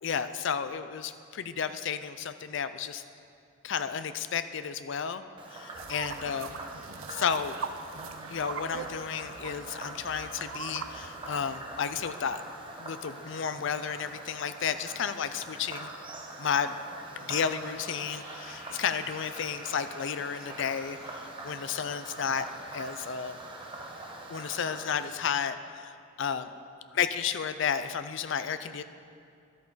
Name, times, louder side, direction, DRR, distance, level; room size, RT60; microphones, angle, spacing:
voice 1, 0.0-3.0 3.6-5.2 5.5-6.6 7.1-7.6 8.3-12.4 12.8-15.9 16.4-16.8 17.2-23.4 24.3-26.5 27.0-28.8, left 7 dB, 65° left, 11 dB, 0.5 m, -32 dB
Frog, 5.4-25.1, right 2 dB, 25° right, 1.1 m, -44 dB
sound 1, 5.7-11.6, right 5 dB, 85° right, 0.5 m, -41 dB
Laughter, 17.0-21.2, right 1 dB, 45° right, 3.2 m, -49 dB
13.0 x 11.5 x 4.0 m, 2.4 s
head